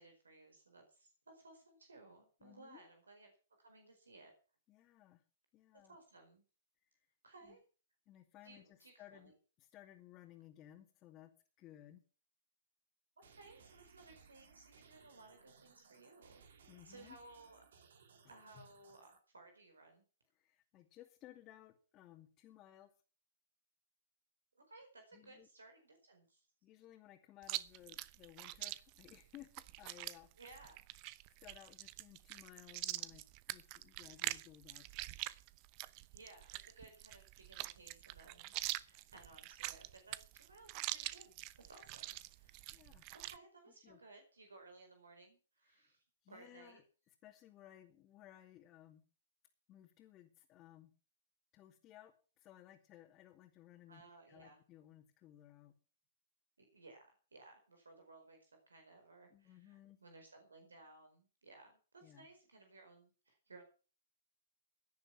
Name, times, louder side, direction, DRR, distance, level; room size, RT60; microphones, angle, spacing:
voice 1, 0.0-3.3 3.6-4.3 5.9-6.4 7.2-7.6 8.4-9.3 13.2-16.4 16.8-17.6 18.3-20.0 24.5-26.5 30.4-30.8 36.1-42.7 43.1-46.8 53.9-54.6 56.6-63.6, right 2 dB, 85° right, 5 dB, 4.7 m, -60 dB
voice 2, 2.4-2.9 4.7-5.2 5.5-6.0 6.8-6.9 7.4-7.6 8.1-9.3 9.6-12.0 16.7-17.2 18.5-18.6 20.3-22.9 25.1-25.5 26.6-30.3 31.4-34.9 42.7-43.1 43.8-44.0 45.7-45.9 46.2-46.8 47.2-49.1 49.7-50.9 51.5-55.8 59.3-60.0 62.0-62.3, left 13 dB, 30° left, 0 dB, 2.5 m, -59 dB
sound 1, 13.2-19.2, right 6 dB, 70° right, 3.2 m, -64 dB
Chewing mastication, 27.4-43.4, right 18 dB, 40° right, 0.8 m, -45 dB
17.0 x 10.5 x 5.9 m, 0.38 s
hypercardioid pair, 115°, 0 cm